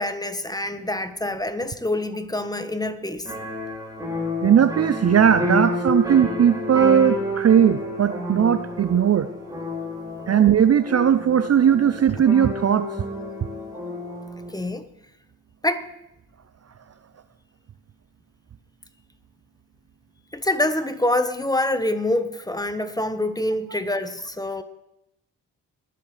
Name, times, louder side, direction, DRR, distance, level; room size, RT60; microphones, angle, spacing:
voice 1, 0.0-3.3 14.5-14.9 15.6-15.9 20.3-24.6, left 1 dB, 10° left, 1.3 m, -26 dB
sound 1, 3.2-14.5, left 1 dB, 10° right, 4.0 m, -30 dB
voice 2, 4.4-9.3 10.3-12.9, right 8 dB, 40° right, 0.6 m, -18 dB
21.5 x 7.7 x 3.4 m
hypercardioid pair, 45°, 40 cm